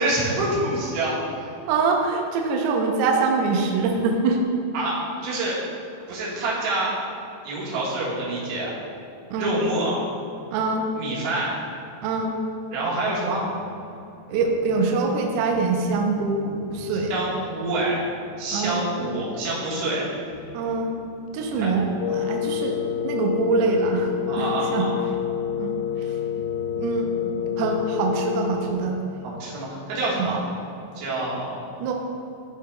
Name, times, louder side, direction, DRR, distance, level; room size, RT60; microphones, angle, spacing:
voice 1, 0.0-1.6 4.7-5.6 6.1-6.9 7.4-8.7 9.3-10.0 11.0-11.6 12.7-13.5 17.1-18.1 18.4-20.0 21.5-21.7 24.3-24.9 27.1-27.6 29.2-30.4 31.0-31.6, right 2 dB, 70° right, -6 dB, 3.5 m, -27 dB
voice 2, 1.7-4.4 9.3-9.6 10.5-10.9 12.0-12.4 14.3-17.1 18.5-18.8 20.5-20.9 21.3-24.1 24.4-24.9 25.6-26.2 26.8-27.1 27.6-29.0 30.2-30.3 31.8-31.9, right 4 dB, 90° right, 1 dB, 2.3 m, -24 dB
sound 1, 13.3-29.0, left 1 dB, 55° left, 2.5 m, -45 dB
Wind instrument woodwind instrument, 22.0-28.7, left 10 dB, 85° left, 2.8 m, -28 dB
14.0 x 4.7 x 2.3 m, 2.7 s
omnidirectional pair, 5.2 m